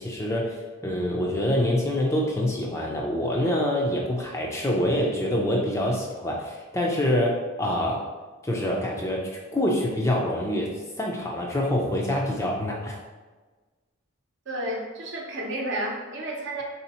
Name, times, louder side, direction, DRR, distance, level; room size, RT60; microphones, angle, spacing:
voice 1, 0.0-8.0 8.4-13.0, left 1 dB, 15° left, -2 dB, 0.4 m, -26 dB
voice 2, 14.5-16.6, right 1 dB, 55° right, -1 dB, 0.8 m, -31 dB
4.0 x 2.8 x 4.1 m, 1.3 s
head